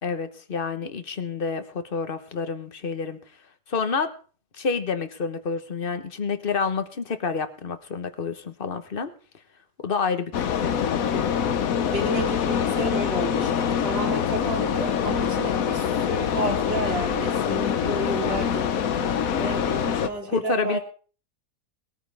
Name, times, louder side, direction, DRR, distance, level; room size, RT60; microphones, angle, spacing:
voice 1, 0.0-3.2 3.7-4.1 4.6-9.1 9.8-11.3 20.2-20.8, left 5 dB, 35° left, 9 dB, 1.3 m, -29 dB
sound 1, 10.3-20.1, left 8 dB, 65° left, 1.3 m, -25 dB
voice 2, 11.9-18.7 19.3-20.8, right 2 dB, 40° right, 2 dB, 3.3 m, -31 dB
20.5 x 14.0 x 3.5 m, 0.40 s
omnidirectional pair, 1.7 m